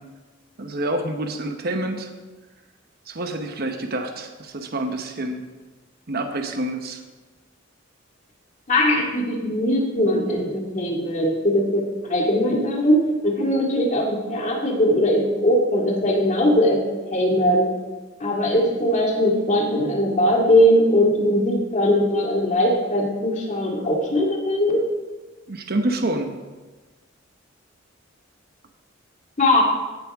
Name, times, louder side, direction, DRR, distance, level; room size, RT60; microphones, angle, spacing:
voice 1, 0.6-2.1 3.1-5.4 6.1-7.0 25.5-26.3, right 1 dB, 50° right, 5 dB, 0.9 m, -27 dB
voice 2, 8.7-16.8 17.1-17.7 18.2-24.9 29.4-29.6, equal, 40° left, -1 dB, 2.1 m, -20 dB
16.5 x 8.4 x 3.6 m, 1.2 s
head